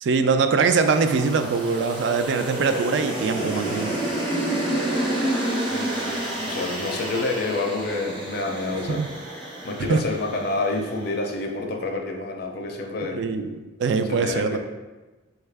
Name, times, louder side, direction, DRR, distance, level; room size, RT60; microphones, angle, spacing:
voice 1, 0.0-4.0 8.9-9.1 9.9-10.0 13.1-14.6, right 5 dB, 60° right, 8 dB, 0.3 m, -22 dB
sound 1, 0.6-11.0, right 1 dB, 25° right, 0.6 m, -29 dB
voice 2, 5.7-9.0 9.6-13.3 14.1-14.6, left 2 dB, 50° left, 2 dB, 0.5 m, -28 dB
5.3 x 2.3 x 3.3 m, 1.2 s
head